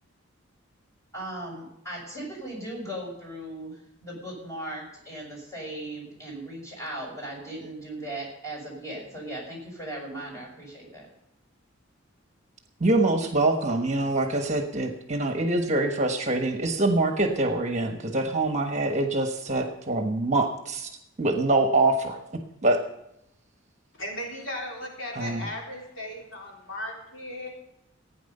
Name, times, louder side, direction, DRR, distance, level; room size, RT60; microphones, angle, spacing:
voice 1, 1.1-11.1, right 1 dB, 15° left, -2 dB, 6.0 m, -38 dB
voice 2, 12.8-20.9 21.2-22.2 22.6-22.8 25.2-25.4, right 2 dB, 35° right, 5 dB, 1.3 m, -24 dB
voice 3, 24.0-27.5, left 1 dB, 70° left, -2 dB, 4.0 m, -36 dB
16.0 x 9.5 x 5.6 m, 0.82 s
head